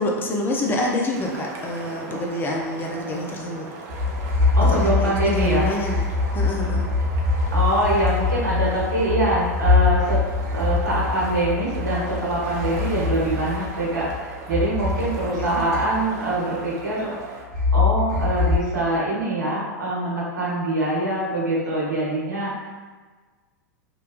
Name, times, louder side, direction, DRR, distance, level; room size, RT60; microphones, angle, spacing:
voice 1, 0.0-3.7 4.7-6.1 6.3-6.9 15.3-15.5, left 1 dB, 20° left, 0 dB, 0.4 m, -27 dB
sound 1, 1.1-17.4, right 3 dB, 40° right, 0.5 m, -39 dB
sound 2, 3.9-14.2 14.5-16.3 17.5-18.6, left 4 dB, 60° right, 1.0 m, -23 dB
voice 2, 4.6-5.7 7.5-10.2 10.5-17.1 17.7-22.7, right 1 dB, 85° right, -6 dB, 1.0 m, -24 dB
2.9 x 2.2 x 2.5 m, 1.4 s
hypercardioid pair, 95°, 10 cm